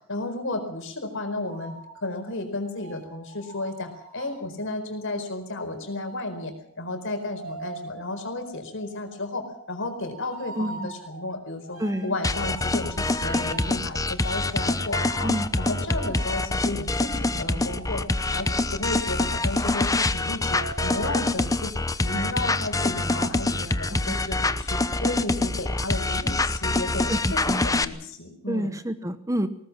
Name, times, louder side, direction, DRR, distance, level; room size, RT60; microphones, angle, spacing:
voice 1, 0.1-15.3 15.6-21.7 22.0-28.8, left 2 dB, 65° left, 6 dB, 4.6 m, -33 dB
sound 1, 1.4-4.5 5.8-19.8 20.3-21.2, right 3 dB, 80° right, 4.6 m, -43 dB
voice 2, 10.6-10.9 11.8-12.1 15.2-15.5 22.1-22.3 24.1-24.2 27.1-27.2 27.5-27.6 28.5-29.5, right 1 dB, 15° right, 11 dB, 1.0 m, -28 dB
sound 2, 12.2-27.9, left 2 dB, 15° left, 0.8 m, -25 dB
20.5 x 19.0 x 7.3 m, 0.65 s
head